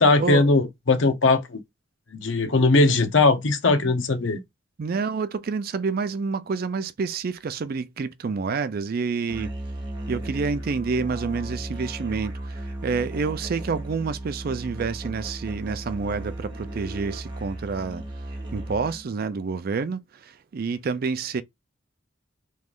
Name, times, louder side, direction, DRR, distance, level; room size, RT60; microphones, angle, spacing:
voice 1, 0.0-1.6 2.1-4.4, left 3 dB, 80° left, 0.7 m, -19 dB
voice 2, 4.8-9.5 10.1-18.0 18.5-20.0 20.5-21.4, right 4 dB, 50° right, 0.4 m, -28 dB
Musical instrument, 9.3-19.1, right 1 dB, 25° right, 1.1 m, -35 dB
3.1 x 2.5 x 3.5 m
head